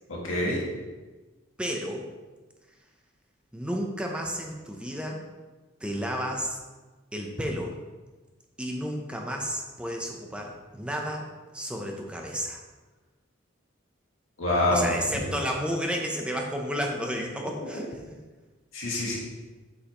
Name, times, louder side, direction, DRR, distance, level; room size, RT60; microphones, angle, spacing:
voice 1, 0.1-0.6 14.4-15.3 17.6-17.7 18.7-19.2, left 1 dB, 90° left, -4 dB, 2.0 m, -26 dB
voice 2, 1.6-2.1 3.5-5.2 5.8-6.6 7.1-7.8 8.6-11.3 11.5-12.6 14.7-18.0, equal, 5° right, 1 dB, 0.6 m, -32 dB
8.1 x 5.5 x 3.0 m, 1.3 s
head